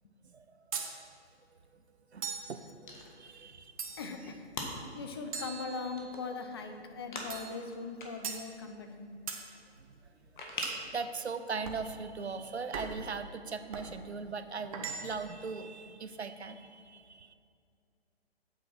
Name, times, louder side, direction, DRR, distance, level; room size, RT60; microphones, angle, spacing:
sound 1, 0.7-1.0 2.2-2.6 3.8-4.2 5.3-6.2 7.3-7.6 8.2-8.5 9.3-9.5 10.6-10.9 11.6-11.9 12.7-13.1 13.7-13.9 14.7-15.3, right 5 dB, 30° right, 0.8 m, -40 dB
voice 1, 2.1-3.7 4.8-5.0 10.6-17.3, right 4 dB, 75° right, 11 dB, 0.7 m, -40 dB
sound 2, 2.8-11.0, left 2 dB, 45° left, 1.7 m, -46 dB
voice 2, 4.0-4.5 4.9-9.1, left 4 dB, 25° left, 5 dB, 0.6 m, -40 dB
8.5 x 6.9 x 5.6 m, 2.4 s
figure-of-eight pair, 135°, 33 cm